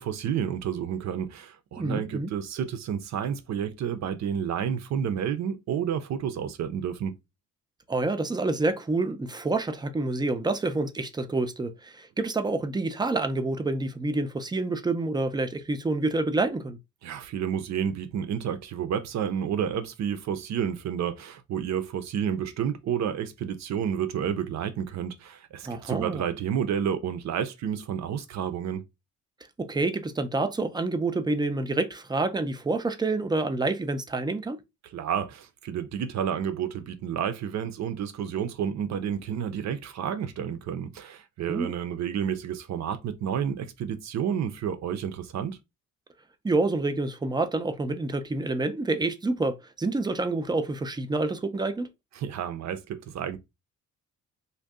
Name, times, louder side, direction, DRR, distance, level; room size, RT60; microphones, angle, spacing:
voice 1, 0.0-7.1 17.0-28.8 34.9-45.6 52.2-53.4, right 8 dB, 65° right, 0.6 m, -30 dB
voice 2, 1.8-2.3 7.9-16.8 25.6-26.2 29.6-34.6 41.5-41.7 46.4-51.9, right 2 dB, 15° right, 0.4 m, -28 dB
2.6 x 2.2 x 3.4 m
cardioid pair, 90°, 30 cm